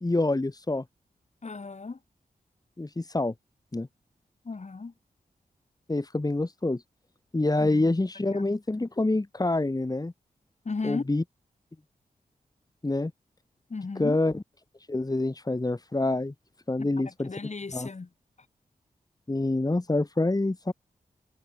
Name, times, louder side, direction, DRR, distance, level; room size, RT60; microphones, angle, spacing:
voice 1, 0.0-0.8 2.8-3.3 3.7-3.9 5.9-6.8 7.3-10.1 10.8-11.2 12.8-13.1 14.0-14.4 14.9-16.3 16.7-17.3 17.7-17.9 19.3-20.7, left 2 dB, 25° left, 3.0 m, -26 dB
voice 2, 1.4-2.0 4.4-4.9 7.6-7.9 8.3-8.4 10.6-11.0 13.7-14.2 16.8-16.9 17.2-18.1, left 4 dB, 50° left, 4.8 m, -35 dB
cardioid pair, 65°, 15 cm